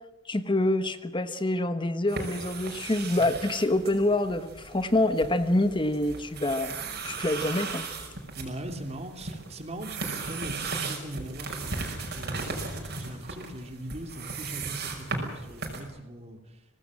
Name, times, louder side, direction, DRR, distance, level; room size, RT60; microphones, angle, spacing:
voice 1, 0.3-6.7 7.0-7.9, left 1 dB, 25° left, 11 dB, 1.2 m, -26 dB
sound 1, 2.1-15.8, right 4 dB, 55° right, 5.7 m, -37 dB
voice 2, 8.3-16.6, right 1 dB, 35° right, 6 dB, 2.8 m, -40 dB
24.5 x 19.0 x 7.5 m, 1.1 s
head